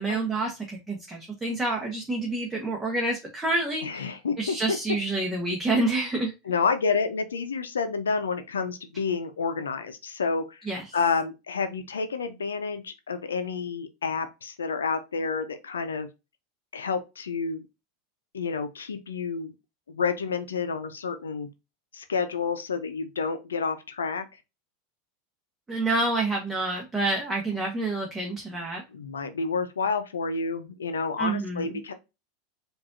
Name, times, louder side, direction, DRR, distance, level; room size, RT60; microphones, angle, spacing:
voice 1, 0.0-4.1 4.4-6.3 10.7-10.8 25.7-28.8 31.2-31.8, right 2 dB, 15° right, 1.1 m, -28 dB
voice 2, 3.8-4.8 6.4-10.7 10.9-16.1 16.7-17.6 18.3-19.5 19.9-21.5 21.9-24.3 28.9-31.9, left 5 dB, 90° left, 0.6 m, -29 dB
4.7 x 2.6 x 2.4 m
hypercardioid pair, 95°, 0 cm